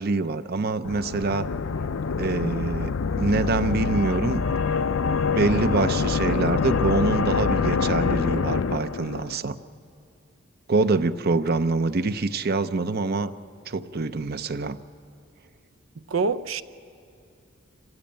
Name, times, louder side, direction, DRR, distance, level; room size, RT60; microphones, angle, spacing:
voice 1, 0.0-1.5 2.2-2.9 3.2-4.4 5.3-9.6 10.7-13.3 13.7-14.8, right 3 dB, 50° right, 12 dB, 0.7 m, -25 dB
sound 1, 0.8-9.4, left 5 dB, 80° left, 0.5 m, -25 dB
voice 2, 16.0-16.6, right 4 dB, 90° right, 13 dB, 0.7 m, -26 dB
27.0 x 16.0 x 8.7 m, 2.5 s
head